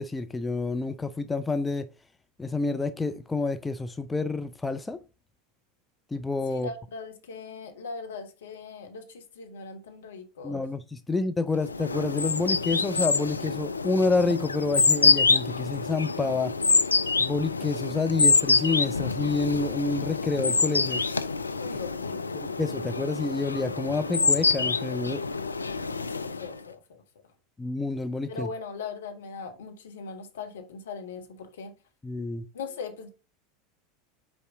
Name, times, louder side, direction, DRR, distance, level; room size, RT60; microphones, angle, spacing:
voice 1, 0.0-1.9 2.4-5.0 6.1-6.7 10.4-16.6 17.2-21.0 22.3-25.2 27.6-28.5 32.0-32.5, left 3 dB, 15° left, 0.5 m, -28 dB
voice 2, 6.5-10.6 21.6-22.4 26.1-27.0 28.3-31.7 32.5-33.1, left 4 dB, 70° left, 1.3 m, -40 dB
sound 1, 11.6-26.6, left 4 dB, 85° left, 0.4 m, -26 dB
5.5 x 4.7 x 3.7 m
figure-of-eight pair, 80°, 0 cm